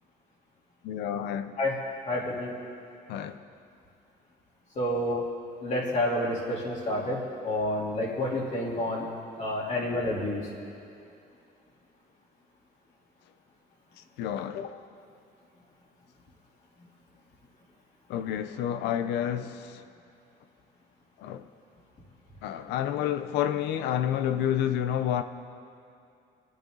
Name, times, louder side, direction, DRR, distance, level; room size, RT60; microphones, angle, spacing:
voice 1, 0.8-1.6 3.1-3.4 5.1-5.2 14.2-14.9 18.1-19.8 21.2-21.4 22.4-25.2, left 10 dB, 85° left, 10 dB, 0.7 m, -29 dB
voice 2, 2.1-2.5 4.8-5.2 5.6-7.2 7.4-9.0 9.4-10.4, left 1 dB, 45° left, -4 dB, 3.6 m, -29 dB
25.5 x 9.0 x 4.0 m, 2.6 s
cardioid pair, 110°, 17 cm